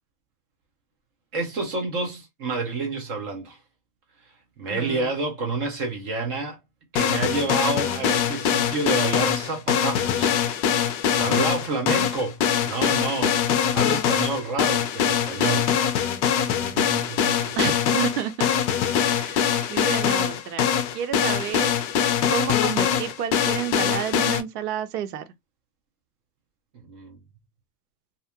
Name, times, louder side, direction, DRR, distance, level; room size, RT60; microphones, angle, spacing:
voice 1, 1.3-3.6 4.6-6.6 6.9-10.4 11.2-13.4 13.7-15.7 16.4-17.5 19.6-19.8 26.9-27.2, right 3 dB, 20° right, 0.4 m, -29 dB
voice 2, 4.7-5.1 11.3-11.4 17.6-18.5 19.1-20.7 20.9-21.7 22.3-25.2, right 9 dB, 65° right, 0.7 m, -30 dB
sound 1, 7.0-24.4, left 8 dB, 45° left, 0.6 m, -23 dB
2.5 x 2.1 x 2.8 m
hypercardioid pair, 135°, 49 cm